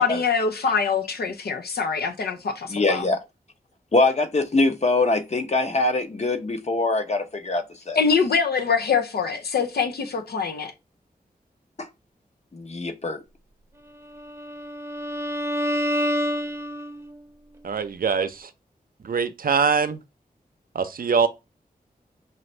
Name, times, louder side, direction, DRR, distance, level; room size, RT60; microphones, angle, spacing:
voice 1, 0.0-3.0 8.0-10.7, left 5 dB, 90° left, 0.7 m, -24 dB
voice 2, 2.7-3.2 3.9-8.0 11.8-11.9 12.5-13.2, left 2 dB, 45° left, 0.9 m, -23 dB
Bowed string instrument, 14.1-17.2, equal, 15° right, 0.8 m, -28 dB
voice 3, 17.6-18.5 19.0-20.0 20.7-21.3, right 6 dB, 65° right, 0.6 m, -23 dB
5.5 x 2.6 x 3.2 m
wide cardioid pair, 85°, 16 cm